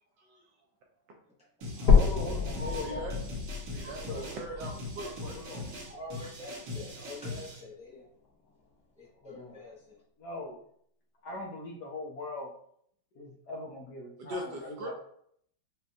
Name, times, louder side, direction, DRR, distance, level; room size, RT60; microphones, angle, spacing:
sound 1, 1.6-7.6, left 2 dB, 85° right, 1.9 m, -41 dB
sound 2, 1.9-5.9 6.4-6.5 7.1-7.2 7.5-7.6 8.5-8.6, left 5 dB, 90° left, 1.8 m, -28 dB
voice 1, 2.0-3.2 4.1-4.3 5.3-5.7 9.2-9.6 10.2-10.6 11.2-12.5 13.1-14.9, left 2 dB, 70° left, -1 dB, 1.1 m, -41 dB
voice 2, 2.5-3.2 3.7-5.5 14.2-14.9, right 1 dB, 70° right, 1 dB, 1.2 m, -40 dB
voice 3, 5.8-8.1 9.0-10.0, left 2 dB, 10° right, -6 dB, 0.4 m, -46 dB
6.2 x 2.2 x 2.6 m, 0.67 s
omnidirectional pair, 2.2 m